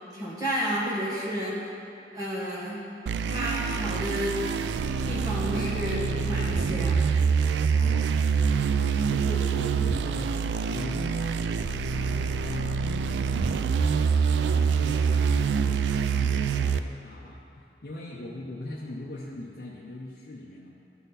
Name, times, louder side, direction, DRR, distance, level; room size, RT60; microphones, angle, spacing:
voice 1, 0.1-1.5 2.1-2.8 3.3-4.4 5.1-7.0, equal, 20° right, -8 dB, 1.5 m, -31 dB
sound 1, 3.1-16.8, right 6 dB, 85° right, 0.3 m, -25 dB
voice 2, 7.7-8.2 9.1-10.4 10.7-12.9 14.2-20.7, left 2 dB, 55° left, -5 dB, 0.6 m, -40 dB
12.0 x 4.2 x 4.0 m, 2.8 s
head